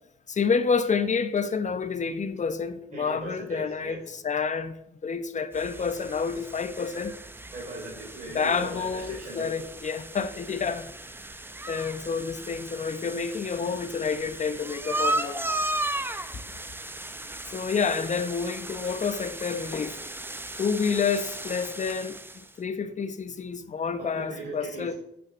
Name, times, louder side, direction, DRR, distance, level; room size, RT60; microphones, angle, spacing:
voice 1, 0.3-7.1 8.3-10.9 11.7-15.4 17.5-20.1 20.6-24.9, left 5 dB, 35° left, 1.1 m, -29 dB
voice 2, 2.9-4.0 7.5-9.7 24.0-24.9, right 2 dB, 35° right, 3.8 m, -39 dB
sound 1, 5.5-22.5, right 2 dB, 10° right, 0.9 m, -36 dB
9.0 x 6.3 x 7.5 m
cardioid pair, 90°, 20 cm